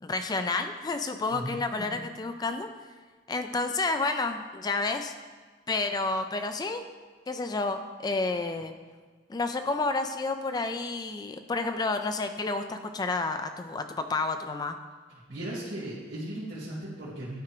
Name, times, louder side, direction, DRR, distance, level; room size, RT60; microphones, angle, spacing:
voice 1, 0.0-2.7 3.3-5.1 5.7-6.8 7.3-8.7 9.3-14.8, left 3 dB, 20° left, 7 dB, 0.3 m, -30 dB
voice 2, 1.3-2.0 15.3-17.4, right 1 dB, 70° right, -8 dB, 2.0 m, -37 dB
11.5 x 4.9 x 3.0 m, 1.4 s
head